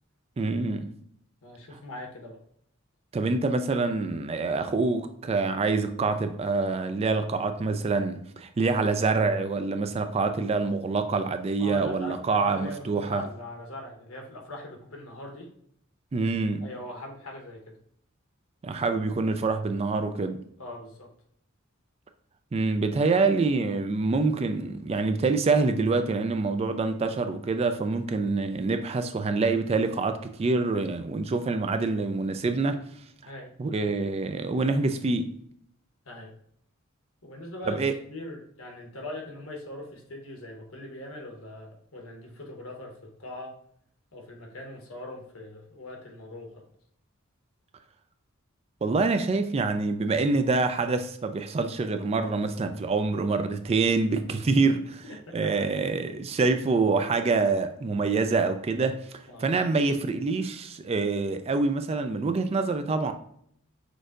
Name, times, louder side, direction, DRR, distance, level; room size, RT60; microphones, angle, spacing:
voice 1, 0.4-1.0 3.1-13.3 16.1-16.7 18.6-20.4 22.5-32.8 33.6-35.3 37.7-37.9 48.8-55.0 55.3-59.0 59.4-63.1, right 3 dB, 30° right, 0.3 m, -26 dB
voice 2, 1.4-2.4 11.6-15.5 16.6-17.8 20.6-21.1 33.2-33.5 36.0-36.3 37.2-37.8 38.1-43.5 44.1-46.6 55.3-55.5 59.3-59.5, left 1 dB, 80° left, 1.1 m, -41 dB
6.2 x 2.6 x 2.5 m
head